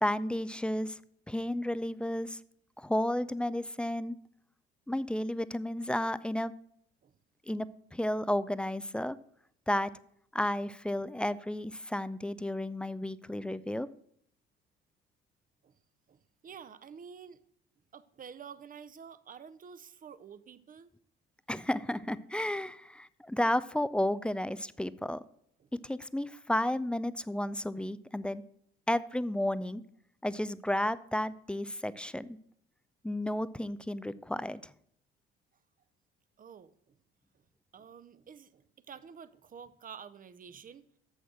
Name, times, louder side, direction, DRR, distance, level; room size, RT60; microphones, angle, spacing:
voice 1, 0.0-1.0 1.3-2.4 2.8-4.2 4.9-6.5 7.5-9.2 9.7-9.9 10.3-13.9 21.5-25.2 25.8-28.4 28.9-29.8 30.2-32.4 33.0-34.7, left 1 dB, 5° left, 0.3 m, -32 dB
voice 2, 16.1-17.4 17.9-20.9 25.6-25.7 36.4-37.0 37.7-40.8, right 7 dB, 30° right, 0.7 m, -49 dB
7.8 x 6.4 x 6.2 m
hypercardioid pair, 55°, 30 cm